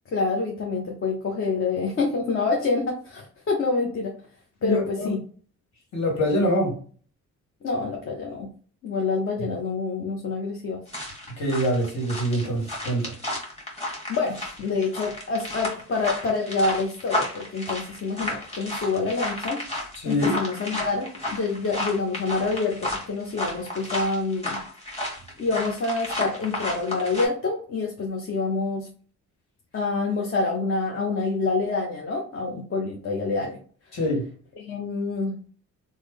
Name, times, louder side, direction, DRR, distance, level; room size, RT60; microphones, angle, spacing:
voice 1, 0.1-4.1 4.6-5.2 7.6-8.5 8.8-10.8 14.1-19.6 20.0-24.6 25.4-28.9 29.7-33.6 34.6-35.3, left 3 dB, 45° left, -1 dB, 0.7 m, -27 dB
voice 2, 4.6-5.1 5.9-6.7 11.4-13.1 20.0-20.3 33.9-34.2, equal, 65° left, -1 dB, 1.7 m, -24 dB
sound 1, 10.9-27.3, left 1 dB, 20° left, 1.5 m, -32 dB
3.2 x 2.1 x 3.5 m, 0.41 s
cardioid pair, 90°, 30 cm